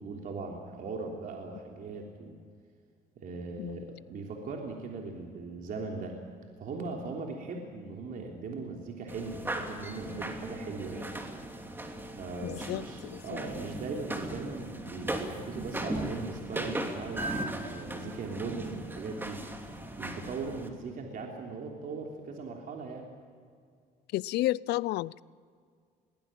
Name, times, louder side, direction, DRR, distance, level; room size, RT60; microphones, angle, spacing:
voice 1, 0.0-2.4 3.1-6.2 6.6-11.2 12.2-19.4 20.0-23.1, right 4 dB, 55° right, 1 dB, 3.3 m, -39 dB
sound 1, 9.1-20.7, right 1 dB, 10° right, 2.8 m, -38 dB
voice 2, 12.4-13.2 24.1-25.2, left 17 dB, 80° left, 22 dB, 0.5 m, -31 dB
22.0 x 19.5 x 8.9 m, 2.1 s
cardioid pair, 110°, 17 cm